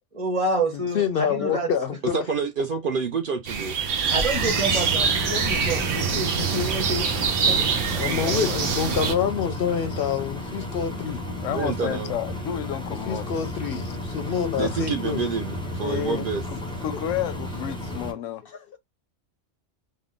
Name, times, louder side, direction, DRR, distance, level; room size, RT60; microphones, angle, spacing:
voice 1, 0.2-1.7 4.0-7.0 7.5-7.7, right 2 dB, 30° right, 1.2 m, -28 dB
voice 2, 0.7-2.2 8.0-11.2 13.1-15.2 18.4-18.8, left 7 dB, 60° left, 0.6 m, -27 dB
voice 3, 2.1-3.8 11.5-12.1 14.6-16.4, right 5 dB, 60° right, 0.6 m, -28 dB
sound 1, 3.5-9.1, right 6 dB, 90° right, 1.1 m, -24 dB
Engine, 4.3-18.1, left 2 dB, 5° left, 0.6 m, -33 dB
voice 4, 7.9-9.0 9.7-9.8 11.4-13.3 13.7-13.8 14.6-14.8 15.8-18.4, left 10 dB, 90° left, 0.9 m, -32 dB
3.7 x 2.1 x 3.6 m
omnidirectional pair, 1.2 m